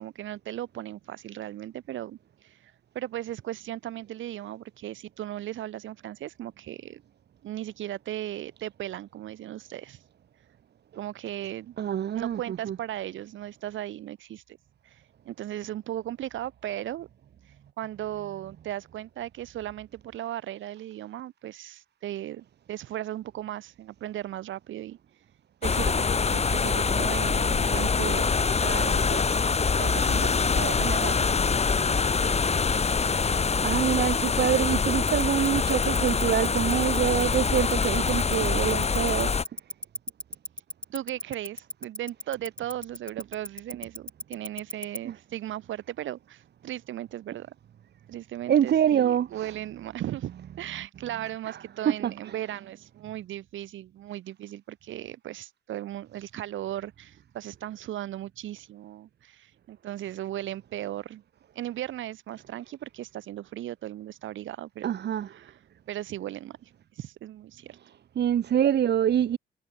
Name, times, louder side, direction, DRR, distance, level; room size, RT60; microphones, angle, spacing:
voice 1, 0.0-2.2 2.4-7.0 7.4-10.0 11.0-11.7 12.1-14.6 14.8-17.1 17.8-25.0 25.6-28.3 28.6-29.3 29.8-31.4 40.9-47.5 48.1-50.3 50.6-61.2 61.5-64.9 65.3-65.5 65.9-66.7 67.0-67.8, right 13 dB, 80° right, 2.7 m, -37 dB
voice 2, 11.8-12.8 33.6-39.3 48.5-49.3 51.5-51.6 51.8-52.1 64.8-65.3 68.1-69.4, right 10 dB, 60° right, 1.4 m, -25 dB
sound 1, 25.6-39.4, left 5 dB, 30° left, 2.3 m, -25 dB
Tick-tock, 35.1-45.0, left 1 dB, 5° left, 2.5 m, -34 dB
cardioid pair, 90°, 20 cm